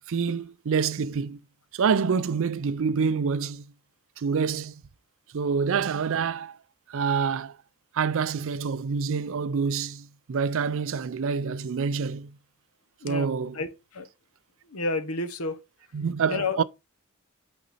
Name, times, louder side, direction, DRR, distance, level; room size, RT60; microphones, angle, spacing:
voice 1, 0.0-1.4 1.7-3.7 4.2-4.7 5.3-6.6 6.9-7.5 7.9-12.3 13.0-13.6 15.9-16.6, right 5 dB, 60° right, 0.4 m, -27 dB
voice 2, 13.5-14.1 14.7-15.6 16.3-16.6, left 3 dB, 75° left, 1.1 m, -30 dB
8.5 x 4.0 x 4.1 m
head